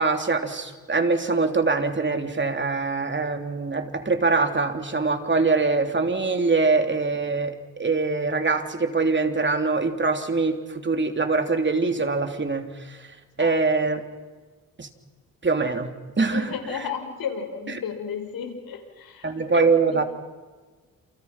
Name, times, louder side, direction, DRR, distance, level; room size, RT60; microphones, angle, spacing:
voice 1, 0.0-14.0 14.8-14.9 15.4-16.5 19.2-20.0, right 4 dB, 30° right, 6 dB, 3.4 m, -23 dB
voice 2, 16.3-20.0, left 7 dB, 80° left, 5 dB, 5.6 m, -33 dB
29.0 x 28.5 x 6.0 m, 1.4 s
cardioid pair, 70°, 36 cm